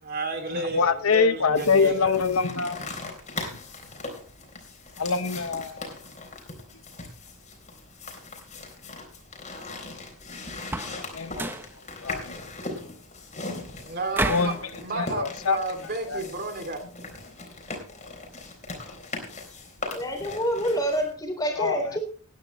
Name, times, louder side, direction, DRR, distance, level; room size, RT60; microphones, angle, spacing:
voice 1, 0.0-2.1 13.7-16.8, right 2 dB, 45° right, 6 dB, 2.6 m, -32 dB
voice 2, 0.5-2.8 5.0-5.9 11.1-11.5 12.0-12.3 14.3-14.6 14.9-15.6 16.1-16.2 21.6-21.8, left 5 dB, 75° left, 10 dB, 1.0 m, -24 dB
sound 1, 1.5-21.1, left 3 dB, 35° left, 3.8 m, -39 dB
sound 2, 10.6-11.0 11.3-11.7 14.1-14.6, right 1 dB, 10° right, 0.8 m, -29 dB
voice 3, 19.9-22.0, equal, 20° left, 5 dB, 3.7 m, -27 dB
18.0 x 10.5 x 3.1 m, 0.39 s
head